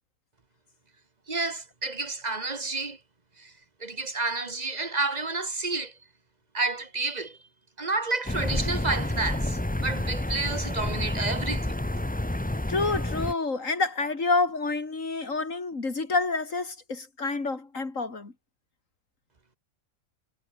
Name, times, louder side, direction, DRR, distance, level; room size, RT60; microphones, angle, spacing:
voice 1, 1.3-3.0 3.4-3.5 3.8-5.9 6.5-7.4 7.8-11.8, right 3 dB, 35° right, 1.7 m, -30 dB
sound 1, 8.3-13.3, left 1 dB, 5° left, 0.9 m, -29 dB
voice 2, 12.7-18.3, left 3 dB, 80° left, 3.7 m, -28 dB
omnidirectional pair, 1.3 m